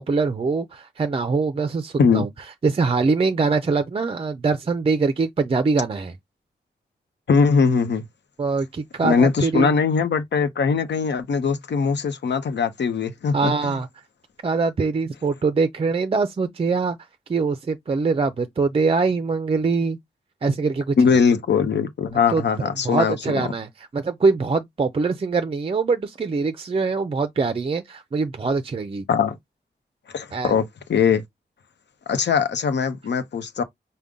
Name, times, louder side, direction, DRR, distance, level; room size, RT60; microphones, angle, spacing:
voice 1, 0.0-2.3 2.6-6.1 8.4-9.7 13.3-13.9 14.4-17.0 17.3-20.0 20.4-20.9 22.3-22.4 22.8-23.7 23.9-29.0 30.3-30.6, right 4 dB, 35° right, 0.4 m, -23 dB
voice 2, 7.3-8.1 9.0-13.8 21.0-23.5 29.1-29.4 30.1-31.2 32.1-33.6, left 5 dB, 85° left, 0.8 m, -21 dB
5.2 x 2.1 x 3.5 m
wide cardioid pair, 150°, 18 cm